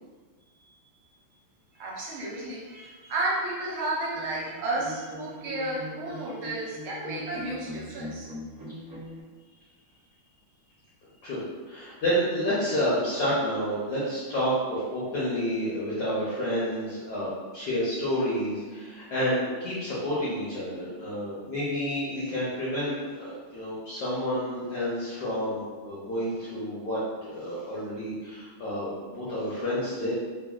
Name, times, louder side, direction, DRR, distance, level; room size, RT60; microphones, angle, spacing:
voice 1, 1.7-8.3, right 2 dB, 75° right, -5 dB, 1.4 m, -32 dB
sound 1, 4.1-9.2, equal, 55° right, 0.9 m, -41 dB
voice 2, 11.7-27.0 27.2-30.1, equal, 70° left, -9 dB, 0.9 m, -29 dB
3.4 x 2.1 x 2.3 m, 1.4 s
omnidirectional pair, 2.3 m